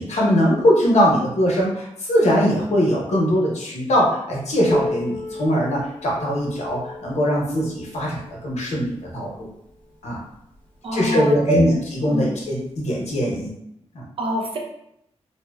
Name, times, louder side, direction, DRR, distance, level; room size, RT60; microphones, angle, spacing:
voice 1, 0.0-9.5 10.0-10.2 10.9-11.7 12.0-13.5 13.9-14.0, equal, 90° left, -3 dB, 0.8 m, -21 dB
Piano, 4.7-10.0 10.9-11.0 11.4-11.5 12.3-12.4 13.5-13.6, left 1 dB, 15° left, 0.5 m, -32 dB
voice 2, 10.8-11.8 12.1-12.4 14.2-14.6, right 1 dB, 55° right, 0 dB, 0.5 m, -24 dB
2.7 x 2.1 x 2.2 m, 0.78 s
wide cardioid pair, 150°, 11 cm